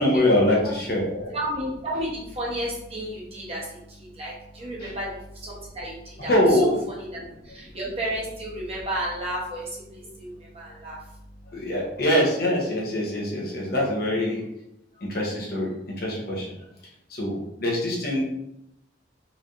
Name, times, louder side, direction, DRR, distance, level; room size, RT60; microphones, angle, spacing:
voice 1, 0.0-1.4 4.8-4.9 6.3-6.7 11.5-14.4 15.0-16.5 17.1-18.2, left 1 dB, 55° left, -3 dB, 1.1 m, -24 dB
voice 2, 1.3-11.7, right 1 dB, 30° right, -5 dB, 1.2 m, -33 dB
4.1 x 3.3 x 2.6 m, 0.81 s
head